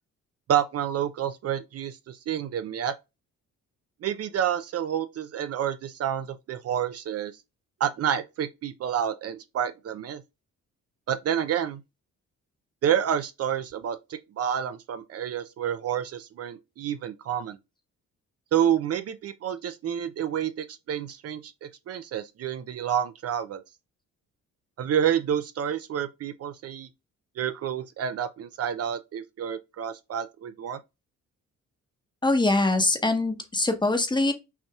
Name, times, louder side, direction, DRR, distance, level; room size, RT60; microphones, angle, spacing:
voice 1, 0.5-2.9 4.0-7.3 7.8-10.2 11.1-11.8 12.8-17.6 18.5-21.5 21.9-23.6 24.8-26.9 27.4-30.8, right 9 dB, 55° right, 0.5 m, -29 dB
voice 2, 32.2-34.3, left 2 dB, 15° left, 0.9 m, -23 dB
5.6 x 2.8 x 2.3 m
cardioid pair, 90°, 30 cm